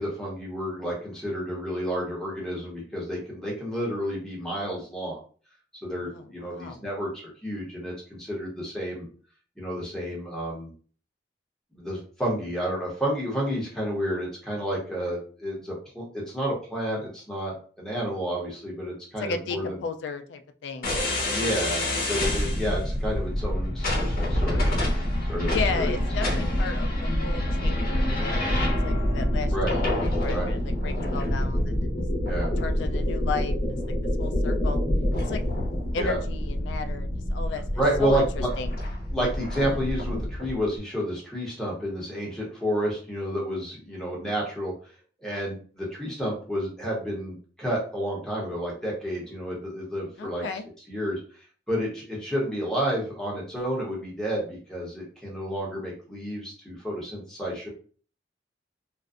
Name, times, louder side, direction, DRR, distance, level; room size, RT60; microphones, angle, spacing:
voice 1, 0.0-5.2 5.8-9.1 9.6-10.7 11.7-19.8 21.2-26.0 26.2-26.4 29.5-29.7 30.3-30.5 32.3-32.5 35.9-36.2 37.8-38.5 39.1-44.7 45.2-50.4 50.9-51.2 51.7-57.7, equal, 5° left, -4 dB, 0.8 m, -30 dB
voice 2, 6.1-6.9 19.2-21.1 25.5-28.6 28.8-31.6 32.6-34.8 35.2-35.5 35.9-38.8 50.2-50.7, left 4 dB, 75° left, 8 dB, 0.3 m, -34 dB
sound 1, 20.8-40.5, left 1 dB, 50° left, 0.7 m, -26 dB
2.5 x 2.1 x 2.4 m, 0.41 s
head